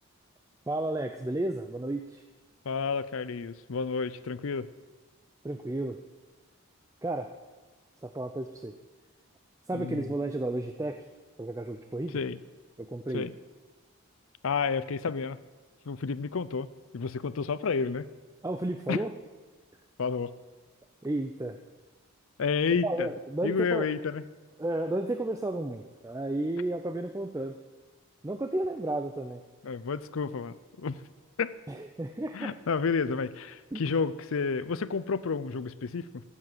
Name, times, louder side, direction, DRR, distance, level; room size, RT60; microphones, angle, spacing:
voice 1, 0.7-2.2 5.4-6.0 7.0-7.3 8.0-8.7 9.7-11.0 11.4-12.2 12.8-13.3 18.4-19.1 21.0-21.6 22.8-23.9 24.6-27.6 28.2-29.4 31.7-32.5 33.7-33.8, right 1 dB, 15° right, 6 dB, 0.4 m, -32 dB
voice 2, 2.6-4.7 9.7-10.1 12.1-12.4 13.1-13.3 14.4-15.4 15.9-16.7 16.9-18.1 18.9-19.0 20.0-20.3 22.4-23.1 23.4-24.2 29.6-31.0 31.4-31.5 32.3-36.2, left 5 dB, 70° left, 16 dB, 0.5 m, -30 dB
12.5 x 8.4 x 7.3 m, 1.3 s
head